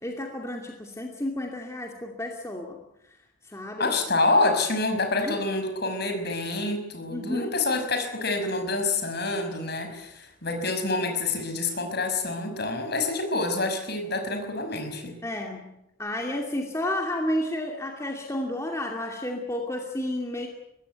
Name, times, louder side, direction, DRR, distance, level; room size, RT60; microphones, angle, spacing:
voice 1, 0.0-2.8 3.1-3.2 3.4-3.9 5.2-5.4 7.1-7.5 15.2-15.7 16.0-20.5, left 1 dB, 15° left, 1 dB, 2.5 m, -31 dB
voice 2, 3.8-15.2, left 2 dB, 50° left, 6 dB, 5.8 m, -27 dB
23.5 x 20.0 x 9.3 m, 0.84 s
head